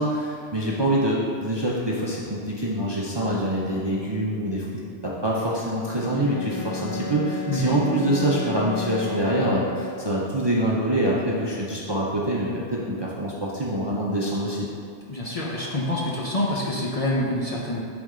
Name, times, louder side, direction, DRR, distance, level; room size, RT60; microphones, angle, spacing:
voice 1, 0.0-4.7 5.0-14.7, right 1 dB, 30° right, -5 dB, 0.5 m, -25 dB
Bowed string instrument, 5.9-10.3, left 4 dB, 70° left, 0.8 m, -33 dB
voice 2, 7.5-7.8 15.1-17.8, left 1 dB, 40° left, -4 dB, 0.7 m, -26 dB
8.5 x 3.5 x 3.7 m, 2.3 s
omnidirectional pair, 1.2 m